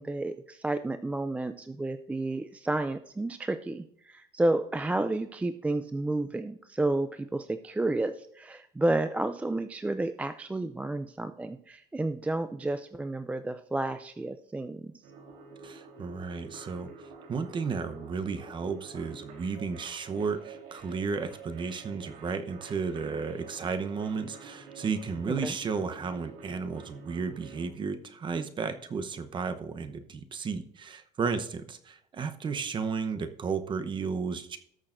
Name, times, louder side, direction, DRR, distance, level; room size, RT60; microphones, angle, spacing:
voice 1, 0.0-15.1 25.3-25.6, right 2 dB, 10° right, 10 dB, 0.4 m, -31 dB
sound 1, 15.0-27.7, right 4 dB, 80° right, 3.7 m, -48 dB
voice 2, 15.6-16.9 17.3-34.6, right 5 dB, 30° right, 9 dB, 0.9 m, -33 dB
19.0 x 6.4 x 2.6 m, 0.72 s
cardioid pair, 120°, 16 cm